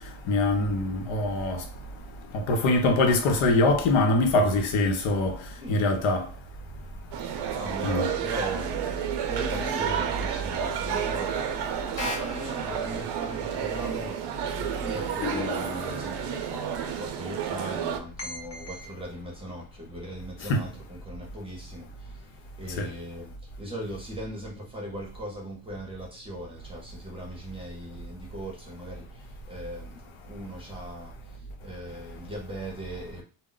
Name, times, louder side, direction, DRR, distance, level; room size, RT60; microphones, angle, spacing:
voice 1, 0.3-1.6 2.3-5.4 5.7-6.3 7.8-8.1 20.5-20.6 22.8-22.9, left 2 dB, 90° left, 0.8 m, -23 dB
sound 1, 7.1-18.0, right 8 dB, 65° right, 0.6 m, -31 dB
voice 2, 7.5-33.2, right 1 dB, 10° right, 0.6 m, -39 dB
sound 2, 12.0-13.0 15.2-16.4 18.2-18.9, left 3 dB, 35° left, 0.7 m, -36 dB
2.2 x 2.0 x 3.7 m
cardioid pair, 160°, 45 cm